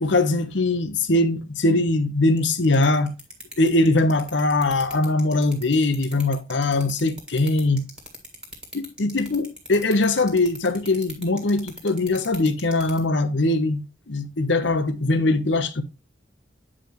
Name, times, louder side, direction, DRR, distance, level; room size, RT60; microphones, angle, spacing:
voice 1, 0.0-3.1 3.6-7.9 8.7-15.8, left 2 dB, 75° left, 1.0 m, -21 dB
sound 1, 2.4-13.0, equal, 5° right, 1.8 m, -39 dB
8.7 x 5.0 x 2.9 m
head